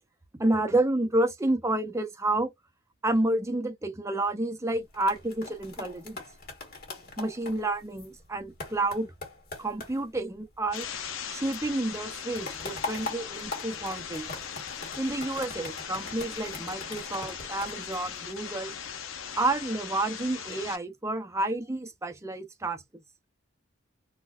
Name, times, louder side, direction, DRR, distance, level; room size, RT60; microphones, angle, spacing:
voice 1, 0.4-2.5 3.0-6.2 7.2-9.1 9.6-10.9 11.3-14.3 15.0-18.8 19.4-22.8, right 2 dB, 15° right, 0.6 m, -29 dB
sound 1, 4.8-11.3 11.5-18.7 19.2-19.5, left 3 dB, 50° left, 1.5 m, -42 dB
sound 2, 10.7-20.8, left 8 dB, 75° left, 0.6 m, -39 dB
3.8 x 2.2 x 2.4 m
head